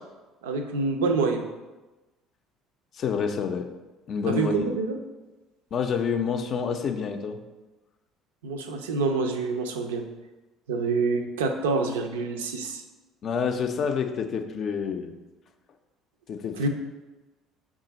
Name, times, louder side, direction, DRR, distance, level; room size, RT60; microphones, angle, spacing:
voice 1, 0.4-1.4 4.3-5.0 8.4-10.1 10.7-12.8 16.6-16.7, right 4 dB, 70° right, 5 dB, 0.4 m, -26 dB
voice 2, 3.0-3.7 4.1-4.8 5.7-7.4 13.2-15.1 16.3-16.7, left 6 dB, 45° left, 6 dB, 0.4 m, -28 dB
5.5 x 2.4 x 4.0 m, 1.1 s
figure-of-eight pair, 55°, 0 cm